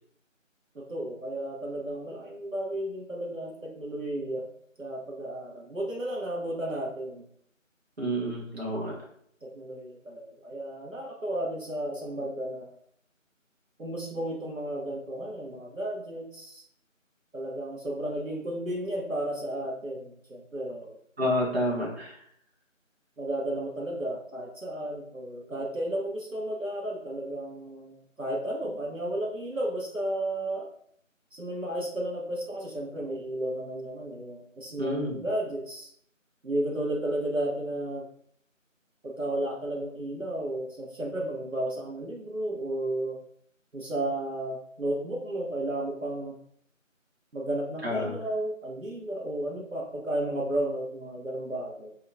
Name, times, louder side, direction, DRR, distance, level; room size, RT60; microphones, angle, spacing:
voice 1, 0.7-4.5 4.8-7.2 9.4-12.7 13.8-16.6 17.3-21.0 23.2-30.7 31.3-35.9 36.4-38.1 39.0-43.2 43.7-46.4 47.3-51.9, right 1 dB, 75° right, -2 dB, 1.0 m, -33 dB
voice 2, 8.0-9.0 21.2-22.2 34.8-35.2 47.8-48.1, equal, 50° right, -5 dB, 1.1 m, -29 dB
2.8 x 2.2 x 3.9 m, 0.65 s
figure-of-eight pair, 175°, 40 cm